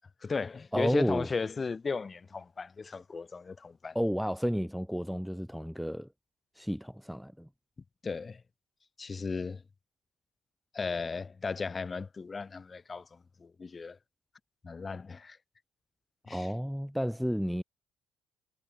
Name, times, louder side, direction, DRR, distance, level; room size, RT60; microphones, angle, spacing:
voice 1, 0.2-4.0 8.0-8.4 9.0-9.6 10.7-14.0 14.6-15.4 16.3-16.5, left 4 dB, 30° left, 2.0 m, -36 dB
voice 2, 0.7-1.3 3.9-6.1 6.6-7.5 16.3-17.6, equal, ahead, 0.8 m, -31 dB
figure-of-eight pair, 50°, 0 cm